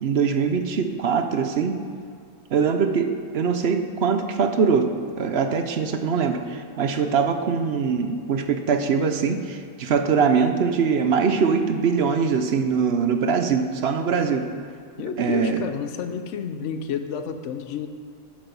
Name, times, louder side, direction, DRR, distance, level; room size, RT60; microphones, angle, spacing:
voice 1, 0.0-1.8 2.5-4.9 5.2-14.5 15.2-15.6, right 6 dB, 55° right, 7 dB, 0.8 m, -22 dB
voice 2, 15.0-17.9, left 7 dB, 65° left, 8 dB, 1.0 m, -30 dB
9.1 x 7.5 x 5.4 m, 2.2 s
omnidirectional pair, 1.4 m